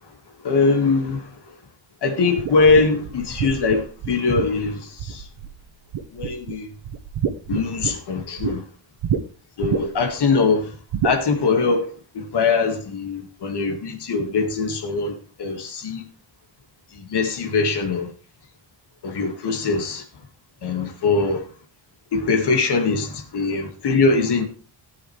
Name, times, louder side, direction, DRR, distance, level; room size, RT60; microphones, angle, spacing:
voice 1, 0.4-1.3 2.0-5.3 6.1-6.7 7.5-8.6 9.6-10.8 11.0-11.9 12.1-16.0 16.9-18.1 19.0-20.0 20.6-21.5 22.1-24.5, left 4 dB, 55° left, 1.9 m, -22 dB
sound 1, 2.4-5.6 5.9-6.5 6.8-8.5 9.0-9.2 9.6-10.1 10.9-11.2, right 8 dB, 90° right, 1.0 m, -27 dB
14.0 x 8.8 x 3.2 m
wide cardioid pair, 175°, 48 cm